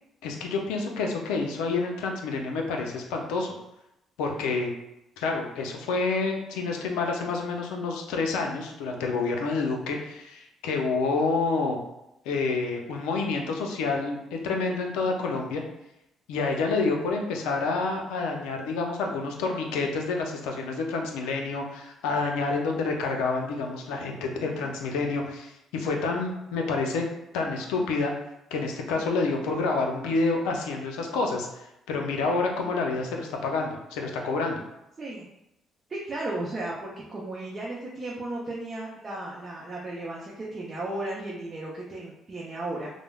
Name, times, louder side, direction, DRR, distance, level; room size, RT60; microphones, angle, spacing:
voice 1, 0.2-3.6 4.2-4.7 5.2-11.8 12.3-15.6 16.3-27.0 27.3-28.1 28.5-34.6, left 3 dB, 90° left, 2 dB, 0.4 m, -28 dB
voice 2, 35.0-35.3 35.9-42.9, right 2 dB, 35° right, -4 dB, 0.5 m, -35 dB
3.2 x 2.0 x 2.3 m, 0.87 s
supercardioid pair, 80°, 0 cm